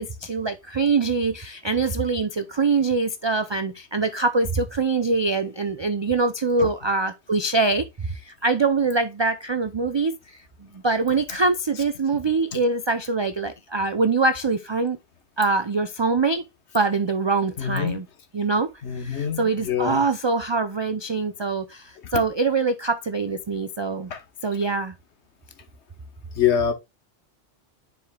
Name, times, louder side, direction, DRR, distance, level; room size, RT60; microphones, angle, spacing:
voice 1, 0.0-10.1 10.7-15.0 15.4-16.4 16.7-18.1 18.3-18.7 18.9-24.1 24.4-24.9, right 3 dB, 40° right, 0.4 m, -24 dB
voice 2, 17.6-18.0 18.8-20.0 24.1-24.2 26.3-26.7, left 9 dB, 85° left, 1.4 m, -24 dB
10.0 x 4.7 x 2.2 m
omnidirectional pair, 1.1 m